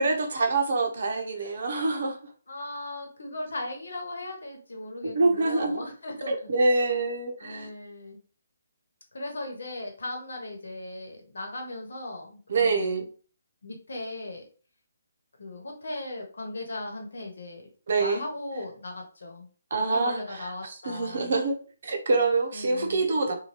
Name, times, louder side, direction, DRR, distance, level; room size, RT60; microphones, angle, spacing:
voice 1, 0.0-2.3 5.0-5.8 6.3-7.7 12.5-13.1 17.9-18.2 19.7-21.5 21.8-23.4, right 3 dB, 50° right, 4 dB, 0.6 m, -26 dB
voice 2, 2.5-6.5 7.4-8.2 9.1-12.9 13.6-14.4 15.4-17.7 18.0-19.5 19.9-21.3 22.5-23.0, left 2 dB, 90° left, 2 dB, 1.0 m, -38 dB
2.8 x 2.2 x 3.0 m, 0.40 s
hypercardioid pair, 180°, 0 cm